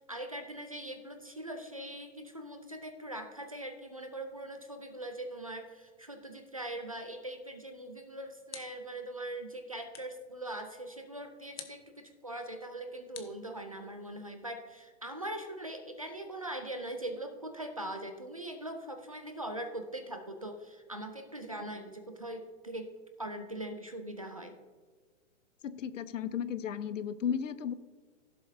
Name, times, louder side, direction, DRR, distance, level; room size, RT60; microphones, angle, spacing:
voice 1, 0.1-22.9 23.2-24.6, right 1 dB, 30° right, 6 dB, 0.4 m, -41 dB
sound 1, 8.5-9.0 9.9-10.3 11.6-11.9 13.1-14.0, left 8 dB, 50° left, 1.1 m, -50 dB
voice 2, 25.6-27.7, left 8 dB, 75° left, 15 dB, 0.7 m, -34 dB
15.5 x 7.2 x 2.7 m, 1.4 s
hypercardioid pair, 170°, 38 cm